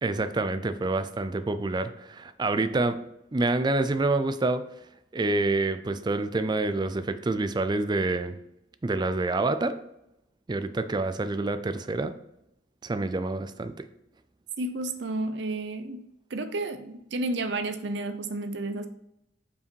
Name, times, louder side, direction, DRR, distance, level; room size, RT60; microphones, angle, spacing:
voice 1, 0.0-3.0 3.3-4.6 5.1-8.4 8.8-9.8 10.5-12.1 12.8-13.9, right 2 dB, 25° right, 11 dB, 0.4 m, -27 dB
voice 2, 14.6-16.0 16.3-18.9, right 2 dB, 70° right, 10 dB, 0.7 m, -31 dB
5.6 x 4.8 x 4.5 m, 0.82 s
head